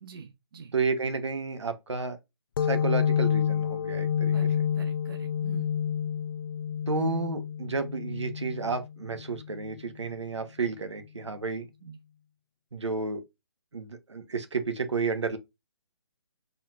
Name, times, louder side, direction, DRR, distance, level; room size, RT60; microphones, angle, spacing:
voice 1, 0.0-0.7 4.3-5.7 11.8-12.0, right 5 dB, 55° right, 0.8 m, -45 dB
voice 2, 0.7-2.2 2.6-4.4 6.9-11.7 12.7-13.2 13.7-15.4, right 4 dB, 85° right, 1.0 m, -31 dB
sound 1, 2.6-9.9, left 8 dB, 55° left, 0.4 m, -29 dB
4.1 x 4.1 x 2.4 m
figure-of-eight pair, 150°, 14 cm